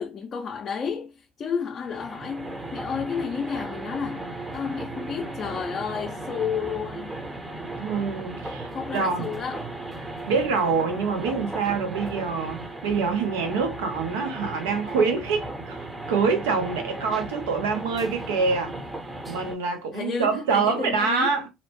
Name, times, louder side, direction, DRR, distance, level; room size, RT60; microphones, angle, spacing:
voice 1, 0.0-7.3 8.7-9.7 19.9-21.4, left 6 dB, 45° left, 0.4 m, -31 dB
sound 1, 1.8-19.6, right 2 dB, 20° right, 0.7 m, -36 dB
voice 2, 7.8-9.3 10.3-18.8 19.3-21.5, right 5 dB, 85° right, 0.6 m, -26 dB
2.7 x 2.1 x 2.9 m
hypercardioid pair, 70°, 0 cm